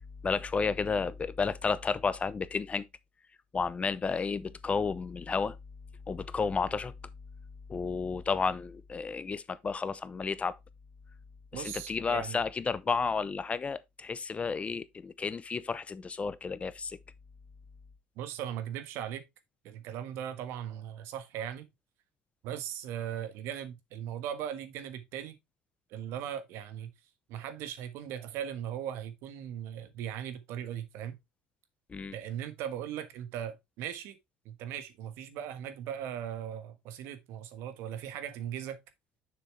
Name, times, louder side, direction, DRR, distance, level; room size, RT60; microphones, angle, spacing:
voice 1, 0.2-2.9 3.5-5.6 6.1-6.9 7.7-10.6 11.5-17.0 31.9-32.2, left 5 dB, 30° left, 0.7 m, -32 dB
voice 2, 11.5-12.4 18.2-19.2 19.6-21.7 22.4-25.4 25.9-26.9 27.3-31.2 32.1-34.2 34.4-38.8, right 10 dB, 70° right, 1.4 m, -38 dB
6.8 x 6.3 x 3.3 m
hypercardioid pair, 75°, 5 cm